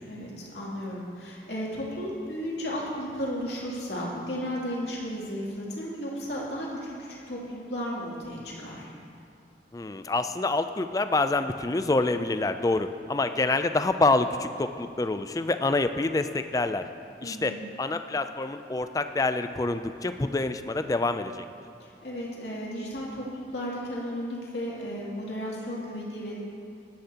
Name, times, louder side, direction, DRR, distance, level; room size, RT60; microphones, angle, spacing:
voice 1, 0.1-8.8 17.2-17.7 21.8-26.4, equal, 70° left, -5 dB, 2.7 m, -34 dB
voice 2, 9.7-16.8 17.2-21.4, left 2 dB, 20° left, 9 dB, 0.3 m, -27 dB
16.5 x 11.5 x 2.9 m, 2.5 s
head